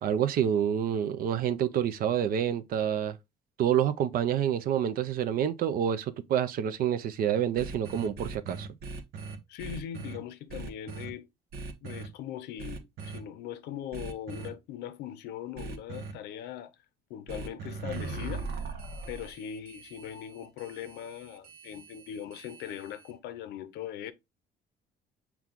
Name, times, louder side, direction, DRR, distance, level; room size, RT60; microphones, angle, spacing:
voice 1, 0.0-3.2 3.6-8.7, right 9 dB, 60° right, 0.5 m, -28 dB
sound 1, 7.6-10.2 10.5-11.1 11.5-12.1 12.6-13.2 13.9-14.5 15.6-16.1 17.3-23.1, right 3 dB, 75° right, 1.0 m, -40 dB
voice 2, 9.5-11.3 11.8-16.7 17.1-18.8 19.1-24.1, left 10 dB, 85° left, 0.7 m, -40 dB
5.9 x 2.3 x 3.6 m
cardioid pair, 110°, 17 cm